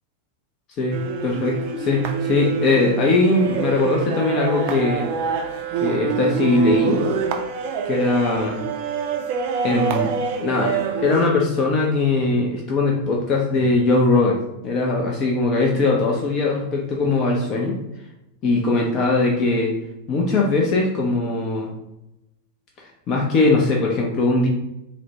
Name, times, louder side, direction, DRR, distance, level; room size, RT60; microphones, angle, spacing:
voice 1, 0.8-5.1 5.8-7.0 7.8-8.6 9.6-10.1 10.4-14.4 14.6-17.8 18.4-19.8 20.1-21.7 23.1-24.5, left 3 dB, 35° left, -1 dB, 0.5 m, -20 dB
sound 1, 0.9-11.3, right 5 dB, 45° right, 0.4 m, -26 dB
4.1 x 2.1 x 2.9 m, 0.87 s
figure-of-eight pair, 90°, 0 cm